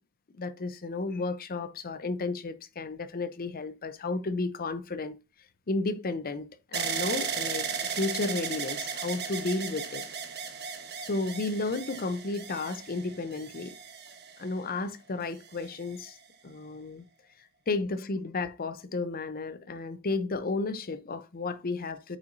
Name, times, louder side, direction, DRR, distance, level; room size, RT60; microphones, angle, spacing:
voice 1, 0.4-5.2 5.7-10.0 11.0-13.7 14.4-16.2 16.4-17.1 17.7-22.2, left 3 dB, 40° left, 0.6 m, -33 dB
sound 1, 6.7-14.7 15.5-16.1, right 6 dB, 45° right, 1.1 m, -36 dB
8.3 x 5.8 x 2.6 m
head